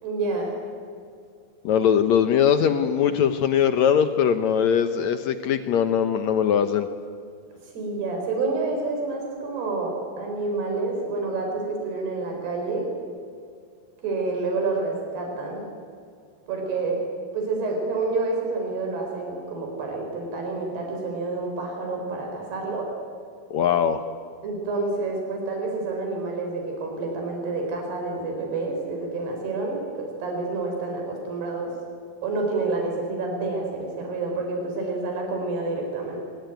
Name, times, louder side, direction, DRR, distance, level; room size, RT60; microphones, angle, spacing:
voice 1, 0.0-0.6 7.7-12.9 14.0-15.7 16.5-17.0 17.3-22.9 24.4-31.7 32.2-36.2, right 3 dB, 85° right, 2 dB, 6.3 m, -28 dB
voice 2, 1.6-6.9 23.5-24.0, left 8 dB, 90° left, 9 dB, 1.5 m, -21 dB
25.0 x 21.5 x 9.2 m, 2.3 s
omnidirectional pair, 4.5 m